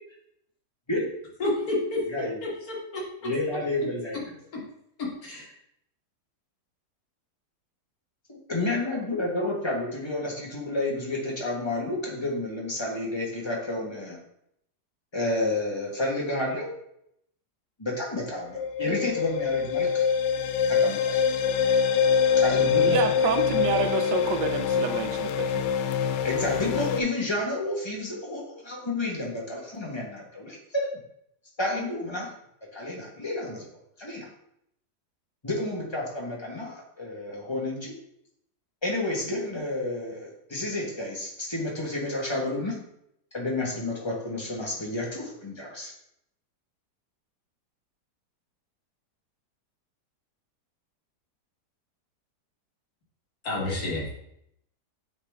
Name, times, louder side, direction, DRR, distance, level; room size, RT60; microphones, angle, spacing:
voice 1, 1.4-2.0 2.4-3.0 5.2-5.5 53.4-54.1, left 2 dB, 60° left, -3 dB, 2.1 m, -29 dB
voice 2, 3.2-4.2 8.3-14.2 15.1-16.7 17.8-20.0 20.7-21.2 22.4-23.1 26.2-31.0 31.6-32.3 32.7-33.6 34.0-34.3 35.4-37.9 38.8-42.8 43.3-45.9, left 2 dB, 15° left, -3 dB, 1.3 m, -30 dB
sound 1, 18.3-27.0, left 7 dB, 90° left, 1.2 m, -24 dB
voice 3, 22.8-25.6, right 7 dB, 90° right, 8 dB, 1.3 m, -28 dB
8.1 x 3.9 x 3.5 m, 0.76 s
omnidirectional pair, 1.8 m